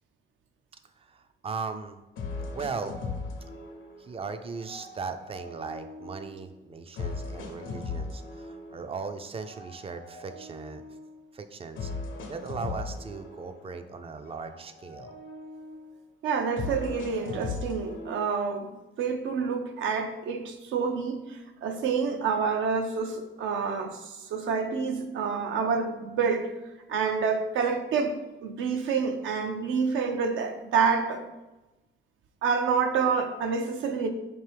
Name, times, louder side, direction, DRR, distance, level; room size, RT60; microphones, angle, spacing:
voice 1, 1.0-2.0 2.5-3.0 4.0-10.8 11.3-11.9 12.3-15.1, right 5 dB, 30° right, 0.4 m, -38 dB
sound 1, 1.5-1.6 2.2-4.2 4.6-6.4 7.0-8.9 9.4-11.2 11.8-13.9 14.2-15.9 16.6-18.5, left 3 dB, 80° left, 0.7 m, -39 dB
voice 2, 16.2-18.7 19.0-26.5 26.9-31.2 32.4-34.1, right 5 dB, 80° right, 0.6 m, -28 dB
4.5 x 2.7 x 3.3 m
cardioid pair, 90°, 20 cm